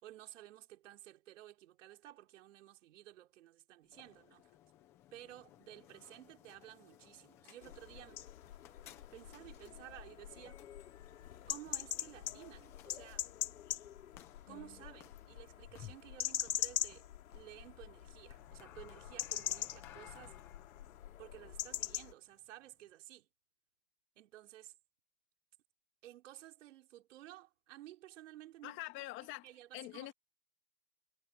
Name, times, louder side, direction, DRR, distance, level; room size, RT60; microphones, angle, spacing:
voice 1, 0.0-4.5 5.1-8.3 8.8-10.7 11.5-13.3 14.5-20.3 21.2-23.3 24.2-24.7 26.0-28.8 29.4-30.1, right 14 dB, 50° right, 5.3 m, -54 dB
sound 1, 3.8-22.9, left 12 dB, 5° left, 0.5 m, -60 dB
sound 2, 7.6-22.1, left 11 dB, 60° left, 4.1 m, -43 dB
voice 2, 28.6-29.5 29.7-30.1, left 18 dB, 25° left, 1.9 m, -45 dB
hypercardioid pair, 145°, 48 cm